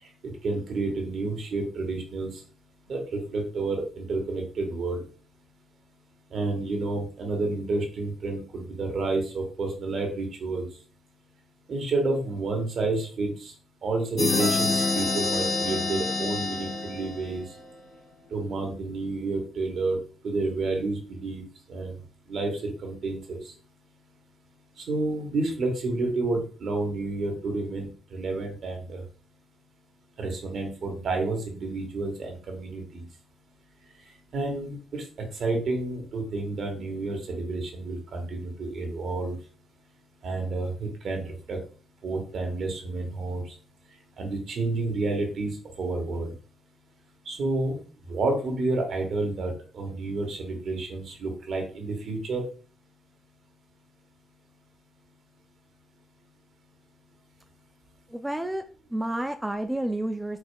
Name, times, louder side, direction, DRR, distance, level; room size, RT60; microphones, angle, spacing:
voice 1, 0.0-2.4 2.9-5.0 6.3-10.7 11.7-13.5 13.8-17.5 18.3-21.4 21.7-22.0 22.3-23.5 24.8-29.0 30.2-33.0 34.3-39.4 40.2-41.6 42.0-43.5 44.2-46.3 47.2-52.4, right 3 dB, 55° right, 3 dB, 1.4 m, -30 dB
sound 1, 14.2-17.7, left 3 dB, 45° left, 0.9 m, -27 dB
voice 2, 58.1-58.6 58.9-60.4, right 1 dB, 10° right, 6 dB, 0.3 m, -30 dB
4.9 x 3.9 x 2.3 m, 0.40 s
cardioid pair, 90°, 0 cm